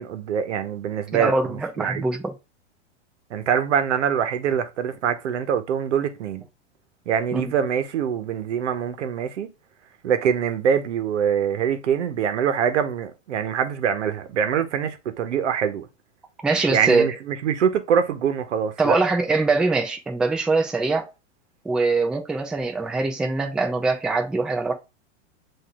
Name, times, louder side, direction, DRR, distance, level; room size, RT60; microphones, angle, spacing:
voice 1, 0.0-2.0 3.3-6.4 7.1-9.5 10.0-15.9 16.7-19.0, right 8 dB, 80° right, 1.0 m, -24 dB
voice 2, 1.1-2.3 7.3-7.5 16.4-17.2 18.8-21.1 21.6-24.7, right 3 dB, ahead, 0.3 m, -23 dB
7.6 x 2.7 x 2.3 m
hypercardioid pair, 120°, 35 cm